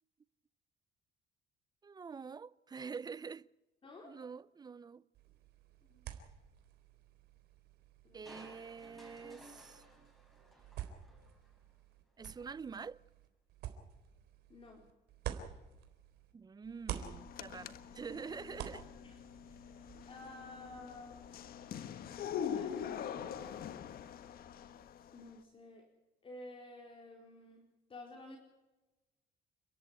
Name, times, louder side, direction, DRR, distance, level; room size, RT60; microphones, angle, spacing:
voice 1, 1.8-3.5 4.0-5.0 8.1-9.8 12.2-13.0 16.3-18.9, right 5 dB, 25° right, 0.6 m, -46 dB
voice 2, 3.8-4.2 5.9-6.1 8.0-8.5 14.5-14.8 19.0-19.2 19.5-19.6 20.1-21.4 22.5-23.8 25.1-25.9 26.2-28.4, left 2 dB, 30° left, 4.2 m, -52 dB
sound 1, 5.1-16.3 16.6-20.0, right 10 dB, 75° right, 3.9 m, -49 dB
Crushing, 8.2-11.6 12.1-12.2, right 1 dB, ahead, 7.9 m, -58 dB
sound 2, 16.9-25.3, left 8 dB, 60° left, 1.5 m, -44 dB
29.5 x 11.5 x 9.7 m
cardioid pair, 110°, 17 cm